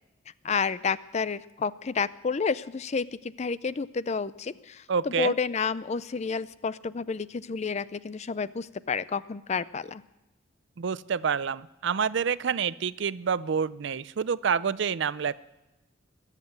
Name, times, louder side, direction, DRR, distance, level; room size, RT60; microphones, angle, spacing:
voice 1, 0.4-10.0, left 5 dB, 35° left, 17 dB, 0.4 m, -30 dB
voice 2, 4.9-5.3 10.8-15.3, right 6 dB, 60° right, 18 dB, 0.5 m, -28 dB
21.5 x 7.5 x 7.8 m, 1.0 s
head